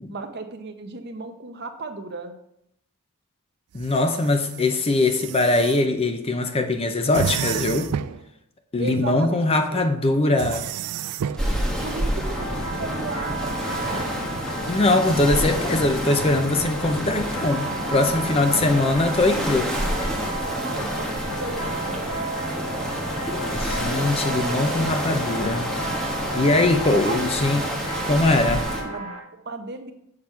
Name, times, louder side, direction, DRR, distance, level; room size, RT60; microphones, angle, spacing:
voice 1, 0.1-2.3 8.8-10.2 11.8-14.3 18.4-19.0 20.5-22.9 26.8-27.3 28.8-29.9, right 4 dB, 50° right, 0.8 m, -35 dB
voice 2, 3.7-7.9 8.7-10.7 14.7-19.7 23.5-25.6 26.3-27.6 28.0-28.7, left 2 dB, 25° left, 0.6 m, -22 dB
sound 1, 3.7-5.8 7.1-8.2 10.4-11.5, right 8 dB, 80° right, 0.3 m, -31 dB
Esterillos Mar Costa-Rica Océano Pacífico, 11.4-28.8, equal, 5° left, 1.4 m, -28 dB
sound 2, 12.3-29.2, right 2 dB, 75° left, 1.5 m, -33 dB
7.4 x 6.0 x 4.5 m
head